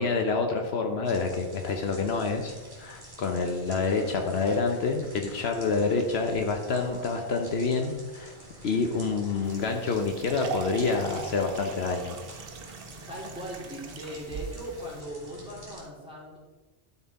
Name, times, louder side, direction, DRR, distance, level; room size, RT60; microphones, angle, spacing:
voice 1, 0.0-8.3 8.6-12.2, left 4 dB, 70° left, 4 dB, 1.0 m, -27 dB
sound 1, 1.0-15.8, right 1 dB, 45° right, 2.3 m, -48 dB
sound 2, 6.7-9.3 9.6-9.7, left 1 dB, 10° left, 1.2 m, -49 dB
sound 3, 9.4-15.0, right 5 dB, 60° right, 0.9 m, -41 dB
voice 2, 12.5-12.8 13.1-16.4, right 1 dB, 5° right, -6 dB, 2.7 m, -39 dB
12.0 x 4.3 x 4.1 m, 1.2 s
omnidirectional pair, 1.1 m